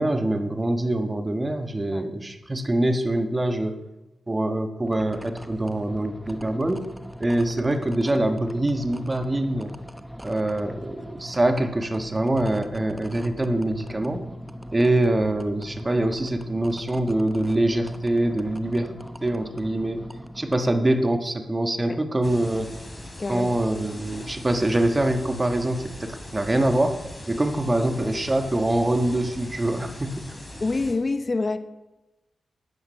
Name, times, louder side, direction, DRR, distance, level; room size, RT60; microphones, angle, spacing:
voice 1, 0.0-3.8 4.3-6.9 7.2-9.7 10.2-14.2 14.7-18.9 19.2-20.0 20.4-22.7 23.3-30.3, right 1 dB, 25° right, 7 dB, 1.5 m, -24 dB
sound 1, 4.8-20.6, equal, 10° right, 1.1 m, -40 dB
sound 2, 22.2-30.9, left 1 dB, 20° left, 3.9 m, -40 dB
voice 2, 23.2-23.6 30.6-31.6, left 3 dB, 40° left, 10 dB, 0.8 m, -26 dB
13.5 x 9.5 x 5.7 m, 1.0 s
cardioid pair, 50°, 0 cm